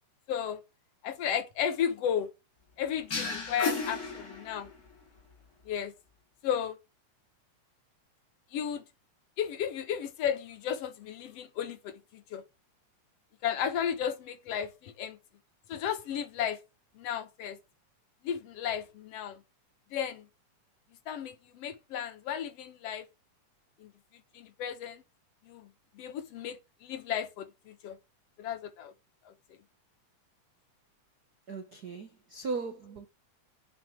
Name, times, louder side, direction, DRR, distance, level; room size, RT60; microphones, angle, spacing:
voice 1, 0.3-0.6 1.0-2.3 2.8-4.7 5.7-5.9 6.4-6.8 8.5-8.8 9.4-12.4 13.4-15.2 15.7-16.6 17.0-17.6 18.2-19.4 19.9-20.3 21.1-23.1 23.8-23.9 24.3-25.0 25.4-28.0 28.4-28.9 29.3-29.4, left 8 dB, 60° left, 1.9 m, -34 dB
sound 1, 3.1-4.9, left 3 dB, 30° left, 2.7 m, -34 dB
voice 2, 31.5-33.1, right 4 dB, 80° right, 0.8 m, -37 dB
8.3 x 6.1 x 6.2 m
omnidirectional pair, 3.6 m